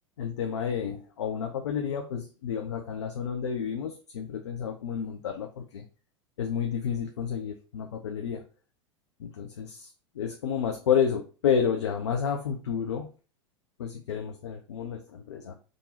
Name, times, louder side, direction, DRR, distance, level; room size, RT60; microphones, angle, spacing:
voice 1, 0.2-5.9 6.4-8.4 9.2-13.1 13.8-15.5, left 7 dB, 60° left, 4 dB, 0.6 m, -30 dB
3.7 x 2.6 x 4.1 m, 0.36 s
figure-of-eight pair, 90°, 16 cm